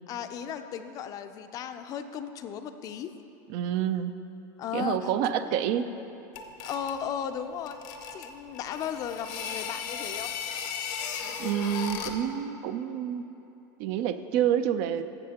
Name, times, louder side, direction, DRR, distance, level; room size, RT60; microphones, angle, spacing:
voice 1, 0.1-3.1 4.6-5.1 5.4-5.5 6.6-7.8 8.1-10.3, left 8 dB, 40° left, 9 dB, 0.4 m, -35 dB
voice 2, 3.5-4.1 4.7-5.9 11.4-13.3 13.8-15.0, right 9 dB, 60° right, 11 dB, 0.4 m, -28 dB
sound 1, 6.4-7.0 7.7-12.3, left 7 dB, 75° left, 0.7 m, -36 dB
13.0 x 7.6 x 2.9 m, 3.0 s
supercardioid pair, 130°, 9 cm